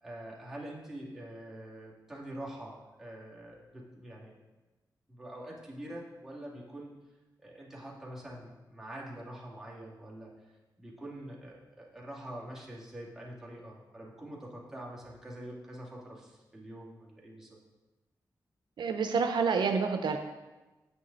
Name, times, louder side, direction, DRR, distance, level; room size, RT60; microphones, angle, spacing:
voice 1, 0.0-4.3 5.1-6.9 7.4-10.5 10.8-17.6, right 1 dB, 5° right, -5 dB, 2.2 m, -45 dB
voice 2, 18.8-20.2, right 5 dB, 80° right, 6 dB, 0.5 m, -28 dB
7.9 x 6.2 x 4.0 m, 1.1 s
cardioid pair, 65°, 8 cm